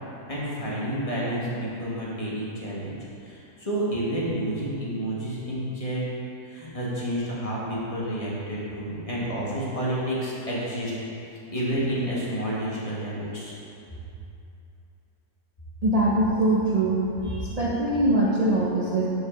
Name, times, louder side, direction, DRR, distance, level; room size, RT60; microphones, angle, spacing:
voice 1, 0.3-3.0 3.2-6.1 6.4-10.9 11.5-13.5, right 1 dB, 25° left, -7 dB, 1.2 m, -30 dB
voice 2, 15.8-19.1, right 1 dB, 75° right, -6 dB, 0.3 m, -23 dB
5.4 x 4.8 x 5.0 m, 2.7 s
omnidirectional pair, 1.6 m